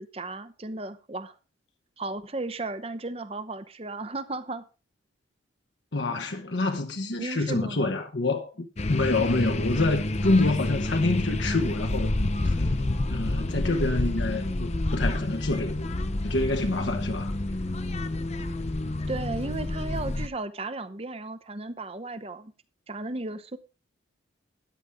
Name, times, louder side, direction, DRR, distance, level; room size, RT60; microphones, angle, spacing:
voice 1, 0.0-1.4 2.0-4.6 7.2-8.0 19.1-22.5 22.9-23.6, right 2 dB, 30° right, 0.8 m, -35 dB
voice 2, 5.9-12.1 12.4-12.6 13.1-15.8 16.2-17.3, left 2 dB, 65° left, 1.1 m, -27 dB
sound 1, 8.8-20.3, left 1 dB, 35° left, 0.7 m, -29 dB
13.5 x 10.0 x 3.6 m
head